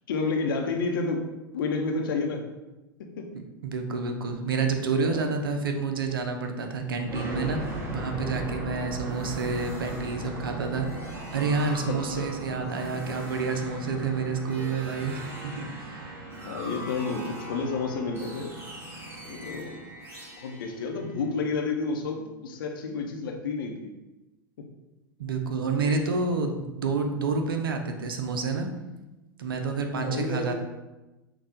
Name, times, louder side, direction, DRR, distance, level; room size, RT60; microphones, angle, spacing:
voice 1, 0.1-1.2 1.5-2.4 3.0-3.3 5.0-5.3 11.9-12.3 16.4-18.5 19.2-19.8 20.4-23.9 24.6-24.7 25.7-26.2 29.9-30.5, left 4 dB, 70° left, 3 dB, 0.7 m, -30 dB
voice 2, 3.6-16.1 25.2-28.7 29.4-30.5, right 4 dB, 75° right, 5 dB, 0.6 m, -29 dB
sound 1, 7.1-21.8, right 1 dB, 20° right, 1.4 m, -38 dB
6.0 x 2.3 x 3.7 m, 1.1 s
hypercardioid pair, 90°, 12 cm